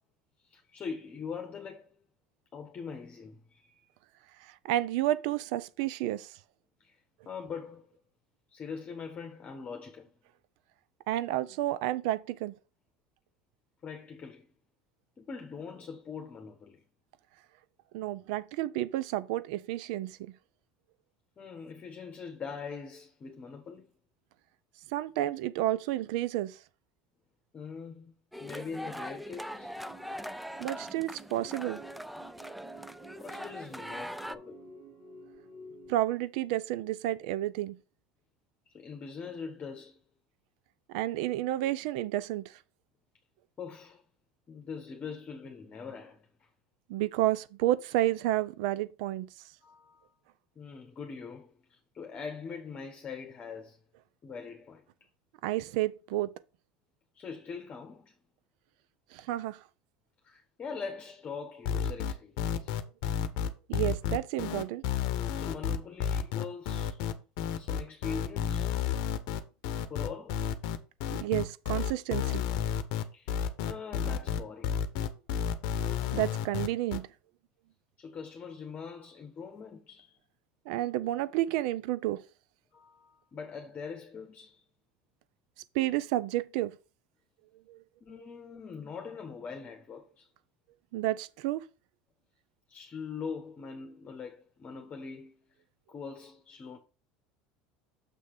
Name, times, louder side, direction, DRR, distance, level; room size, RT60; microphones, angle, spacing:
voice 1, 0.4-1.9 2.5-3.9 6.8-7.9 8.5-10.1 13.8-14.5 15.2-16.8 21.4-23.9 27.5-30.4 33.2-34.7 38.7-40.0 43.6-44.0 44.5-46.5 49.6-50.1 50.6-53.8 54.2-54.9 57.1-58.1 60.2-62.7 65.3-67.0 67.6-68.8 69.9-70.5 73.1-73.4 73.6-74.8 78.0-80.2 82.7-84.6 88.0-90.3 92.7-95.4 95.9-96.8, left 5 dB, 35° left, 1.0 m, -43 dB
voice 2, 4.6-6.3 11.1-12.5 17.9-20.3 24.9-26.6 30.6-31.8 35.9-37.8 40.9-42.5 46.9-49.3 55.4-56.3 59.1-59.6 63.7-64.8 71.2-72.5 75.8-77.1 80.7-82.2 85.7-86.8 87.7-87.8 90.9-91.6, right 14 dB, 75° right, 0.5 m, -31 dB
sound 1, 28.3-34.4, equal, ahead, 0.4 m, -41 dB
sound 2, 29.3-36.0, right 3 dB, 50° right, 2.4 m, -52 dB
sound 3, 61.7-77.0, left 9 dB, 70° left, 0.8 m, -31 dB
6.9 x 3.2 x 5.9 m
supercardioid pair, 105°, 4 cm